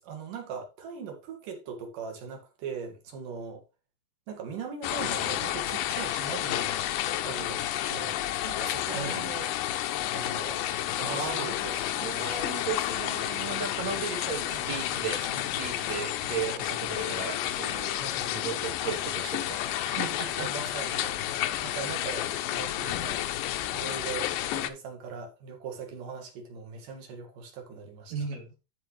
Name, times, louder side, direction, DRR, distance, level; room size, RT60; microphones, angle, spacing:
voice 1, 0.0-3.6 4.3-6.9 7.2-8.2 8.4-9.5 10.1-10.6 11.0-12.4 14.5-14.7 15.3-15.5 17.9-18.4 20.3-23.2 23.7-28.1, right 6 dB, 80° right, 3.4 m, -40 dB
sound 1, 4.8-24.7, left 13 dB, 80° left, 2.3 m, -31 dB
voice 2, 8.9-9.3 11.0-11.5 11.7-18.0 18.3-20.5 20.9-21.1 28.1-28.5, right 6 dB, 60° right, 2.8 m, -36 dB
14.0 x 4.6 x 3.1 m
omnidirectional pair, 3.8 m